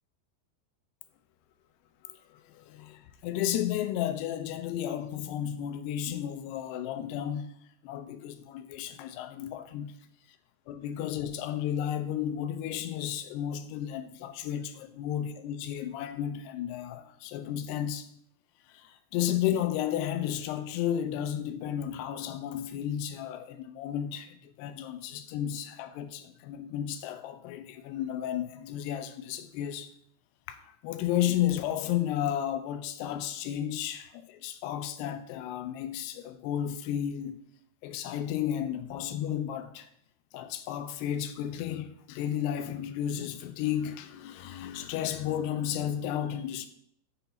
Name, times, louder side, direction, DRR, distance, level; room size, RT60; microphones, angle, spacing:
voice 1, 2.0-7.5 7.8-9.9 10.7-18.1 18.7-29.9 30.5-37.4 37.8-39.9 40.3-46.7, left 10 dB, 85° left, 2.7 m, -33 dB
7.1 x 4.0 x 5.6 m
omnidirectional pair, 4.7 m